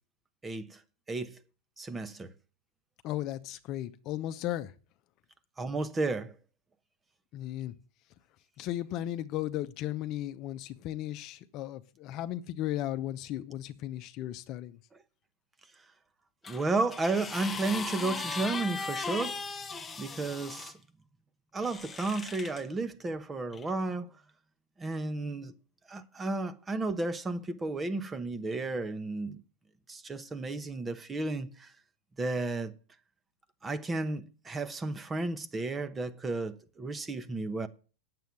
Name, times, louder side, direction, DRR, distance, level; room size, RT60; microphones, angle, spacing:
voice 1, 0.4-0.8 1.1-1.3 1.8-2.3 5.6-6.3 16.5-19.4 20.0-20.7 21.5-24.1 24.8-25.5 25.9-29.4 29.9-31.7 32.2-32.7 33.6-37.7, right 3 dB, 15° right, 1.0 m, -33 dB
voice 2, 3.0-4.7 7.3-7.7 8.6-14.8, left 13 dB, 45° left, 0.8 m, -35 dB
sound 1, 16.4-20.7 21.6-22.6 23.5-23.7, left 4 dB, 15° left, 1.1 m, -38 dB
9.1 x 7.7 x 7.1 m
hypercardioid pair, 115°, 0 cm